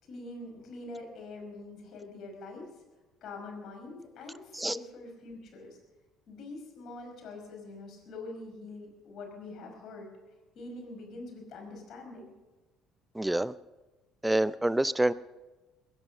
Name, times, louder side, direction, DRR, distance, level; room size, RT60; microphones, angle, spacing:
voice 1, 0.0-2.7 3.2-5.8 6.3-10.1 10.6-12.3, left 2 dB, 55° left, 2 dB, 5.3 m, -44 dB
voice 2, 13.2-13.5 14.2-15.1, right 1 dB, 10° right, 17 dB, 0.5 m, -26 dB
21.5 x 10.5 x 6.5 m, 1.2 s
hypercardioid pair, 60°, 0 cm